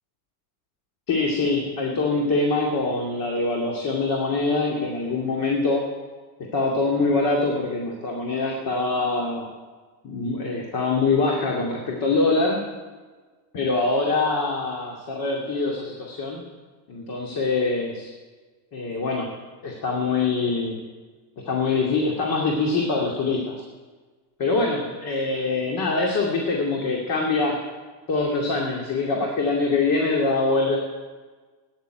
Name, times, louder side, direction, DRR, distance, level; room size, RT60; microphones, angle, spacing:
voice 1, 1.1-5.8 6.5-9.5 10.0-12.7 13.5-16.4 16.9-18.1 18.7-19.3 19.6-20.8 21.4-23.7 24.4-27.6 28.1-30.8, left 3 dB, 45° left, 0 dB, 2.5 m, -24 dB
13.5 x 10.0 x 9.1 m, 1.4 s
supercardioid pair, 120°, 46 cm